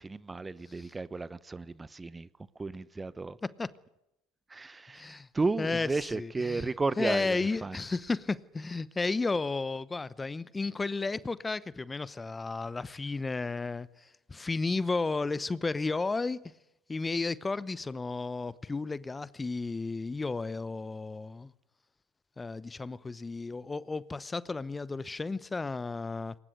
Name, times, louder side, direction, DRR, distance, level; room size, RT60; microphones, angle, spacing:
voice 1, 0.0-2.3 2.5-3.4 4.5-7.8, right 3 dB, 15° right, 0.9 m, -33 dB
voice 2, 3.4-3.7 4.9-5.3 5.6-5.9 6.1-6.7 7.0-16.4 16.9-21.5 22.4-26.4, left 3 dB, 20° left, 0.9 m, -33 dB
22.5 x 20.0 x 9.4 m
hypercardioid pair, 70°, 0 cm